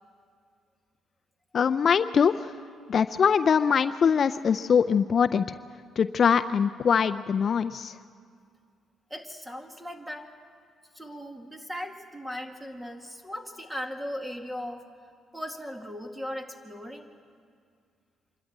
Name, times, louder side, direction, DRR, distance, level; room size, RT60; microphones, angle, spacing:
voice 1, 1.5-2.5 2.9-5.4 6.0-7.9, left 6 dB, 50° left, 10 dB, 0.5 m, -23 dB
voice 2, 9.1-10.3 10.9-14.8 15.3-17.1, equal, 10° right, 4 dB, 2.2 m, -38 dB
26.0 x 12.5 x 10.0 m, 2.2 s
cardioid pair, 90°, 0 cm